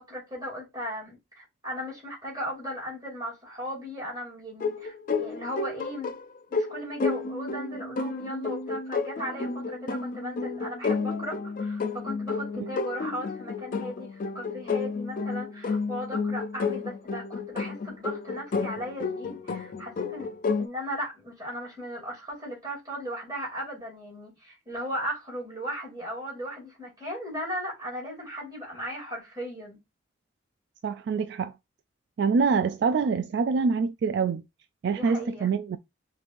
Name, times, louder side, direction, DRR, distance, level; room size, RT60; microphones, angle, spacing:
voice 1, 0.0-6.1 6.5-20.3 20.6-29.8 34.8-35.5, equal, 20° right, 2.8 m, -37 dB
sound 1, 4.6-20.7, left 4 dB, 45° left, 0.4 m, -31 dB
voice 2, 30.8-31.6 32.2-34.4 34.8-35.8, right 5 dB, 60° right, 0.3 m, -25 dB
5.2 x 3.0 x 2.5 m
head